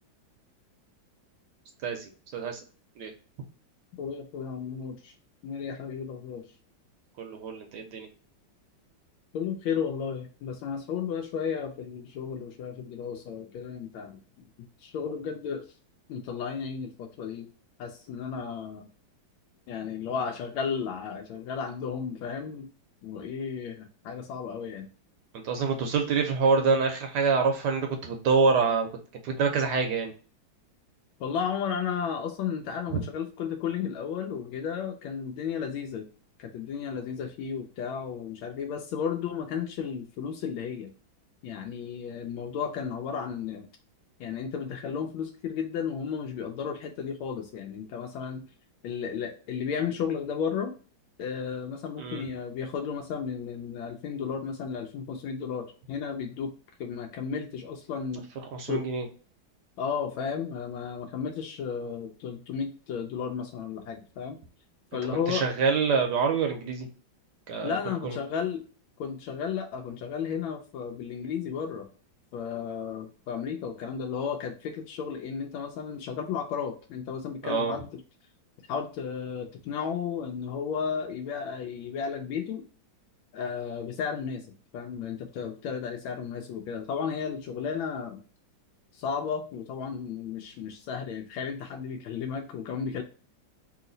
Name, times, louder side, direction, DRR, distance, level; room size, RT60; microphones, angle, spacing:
voice 1, 1.8-2.6 3.0-3.1 7.2-8.1 25.4-28.9 29.2-30.1 32.9-33.0 52.0-52.3 58.5-59.1 65.3-66.9 67.5-67.8 68.0-68.2 77.4-77.7, right 5 dB, 70° right, 4 dB, 1.1 m, -26 dB
voice 2, 4.0-5.1 5.4-6.4 9.3-14.2 14.8-15.6 16.1-17.5 17.8-18.9 19.7-22.7 23.0-24.9 31.2-36.1 36.4-40.9 41.4-43.7 44.2-48.4 48.8-50.7 51.2-56.5 56.8-58.3 58.7-58.8 59.8-64.4 64.9-65.4 67.6-68.6 69.0-71.9 72.3-77.9 78.7-82.6 83.3-84.5 84.7-88.2 88.9-93.0, left 7 dB, 85° left, 3 dB, 1.4 m, -33 dB
3.1 x 2.9 x 3.8 m, 0.39 s
omnidirectional pair, 2.2 m